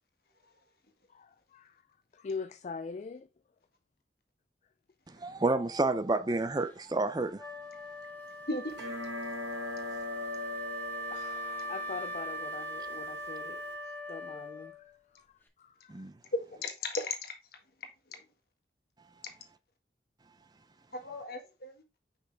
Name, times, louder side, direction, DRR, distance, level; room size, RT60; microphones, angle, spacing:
voice 1, 1.1-1.8 2.1-3.3 9.8-10.0 10.3-14.8 15.1-15.3 15.6-16.0, left 4 dB, 40° left, 0.3 m, -43 dB
voice 2, 5.1-7.5 15.9-16.1, right 2 dB, 25° right, 0.5 m, -30 dB
Wind instrument woodwind instrument, 7.4-14.9, right 1 dB, 10° left, 1.1 m, -41 dB
voice 3, 8.5-8.8 16.3-17.3 18.1-18.2 20.9-21.8, left 2 dB, 60° left, 1.7 m, -35 dB
sound 1, 8.7-13.7, left 3 dB, 80° right, 2.5 m, -41 dB
6.2 x 5.5 x 3.4 m
head